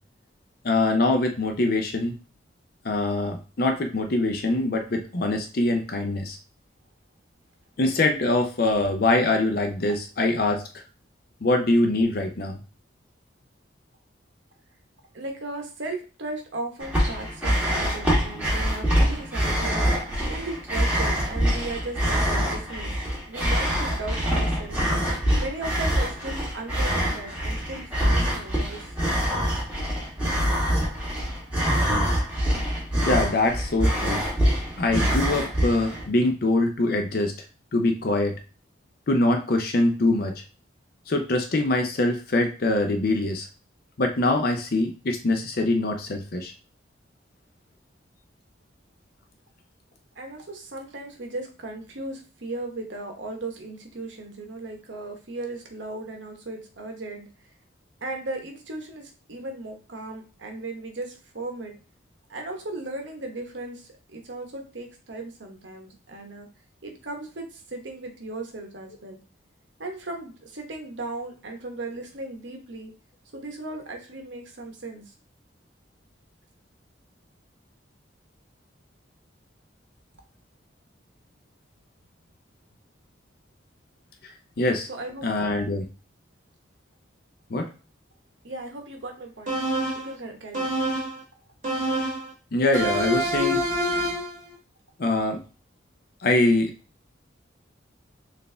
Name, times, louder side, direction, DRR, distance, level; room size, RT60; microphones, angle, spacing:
voice 1, 0.6-2.1 2.8-6.4 7.8-10.6 11.4-12.6 33.0-34.2 34.8-37.3 37.7-38.4 39.1-40.3 41.1-43.5 44.0-46.5 84.6-84.9 85.2-85.8 87.5-87.7 92.5-93.6 95.0-95.4 96.2-96.7, left 2 dB, 50° left, 5 dB, 0.5 m, -23 dB
voice 2, 15.1-22.9 23.3-24.8 25.4-28.9 50.2-57.3 58.0-61.7 62.3-66.5 66.8-69.2 69.8-72.9 73.3-75.0 84.9-85.3 88.4-89.6 89.9-90.7, right 2 dB, 70° right, 2 dB, 1.0 m, -36 dB
sound 1, 16.8-36.1, equal, 5° right, 1.5 m, -25 dB
sound 2, 89.5-90.1 90.5-91.2 91.6-92.3 92.7-94.4, right 1 dB, 40° right, 1.3 m, -26 dB
4.1 x 2.5 x 3.3 m, 0.34 s
head